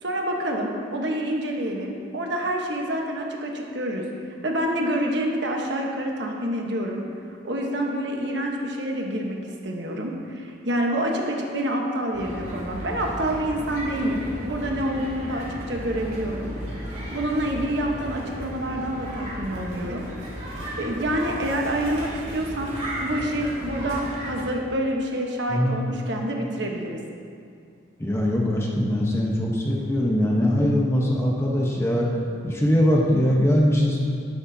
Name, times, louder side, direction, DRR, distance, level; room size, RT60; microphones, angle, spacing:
voice 1, 0.0-4.0 4.4-7.0 7.4-9.4 9.6-16.5 17.1-20.0 20.8-22.7 23.0-27.0, right 1 dB, 65° right, 0 dB, 1.2 m, -27 dB
sound 1, 12.1-24.4, equal, 35° right, 2.4 m, -34 dB
voice 2, 28.0-32.1 32.4-34.0, equal, 15° left, -2 dB, 1.0 m, -21 dB
11.5 x 11.0 x 2.8 m, 2.3 s
head